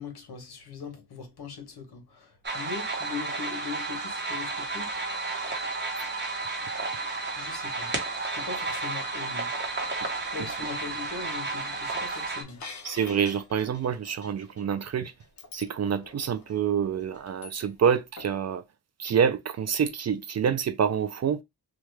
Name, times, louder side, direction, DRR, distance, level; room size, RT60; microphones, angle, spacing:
voice 1, 0.0-5.1 7.3-7.9 8.3-9.5 10.3-12.6, left 5 dB, 70° left, 1.3 m, -40 dB
sound 1, 2.4-12.4, right 3 dB, 25° right, 1.0 m, -32 dB
sound 2, 9.6-17.9 18.2-18.4, left 4 dB, 45° left, 0.7 m, -48 dB
voice 2, 12.8-15.1 15.5-18.6 19.0-21.4, right 7 dB, 40° right, 0.4 m, -27 dB
2.9 x 2.3 x 3.3 m
cardioid pair, 100°, 41 cm